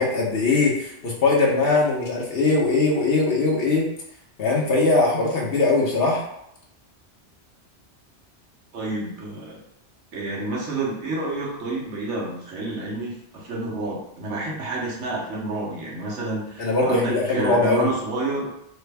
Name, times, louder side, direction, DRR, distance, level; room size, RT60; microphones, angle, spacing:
voice 1, 0.0-3.9 4.4-6.2 16.6-17.9, left 3 dB, 60° left, -3 dB, 1.0 m, -21 dB
voice 2, 8.7-9.6 10.1-18.5, right 2 dB, 80° right, -4 dB, 1.3 m, -29 dB
3.2 x 2.2 x 3.3 m, 0.78 s
omnidirectional pair, 1.2 m